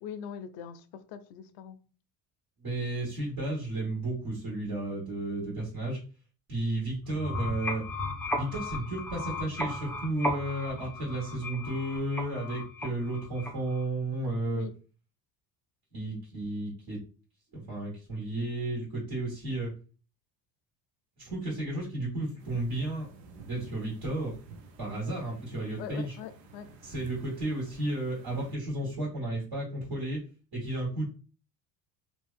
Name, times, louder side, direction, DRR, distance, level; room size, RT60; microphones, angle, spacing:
voice 1, 0.0-1.8 14.5-14.7 25.8-26.7, left 8 dB, 60° left, 0.5 m, -42 dB
voice 2, 2.6-6.0 6.5-7.8 8.4-14.6 15.9-17.0 17.5-19.7 21.2-23.1 23.5-24.3 24.8-26.1 26.8-30.2 30.5-31.1, right 2 dB, 50° right, 1.4 m, -33 dB
sound 1, 7.1-13.8, left 1 dB, 5° left, 0.4 m, -36 dB
sound 2, 22.4-28.6, right 3 dB, 85° right, 0.6 m, -51 dB
2.6 x 2.2 x 2.4 m
hypercardioid pair, 75°, 49 cm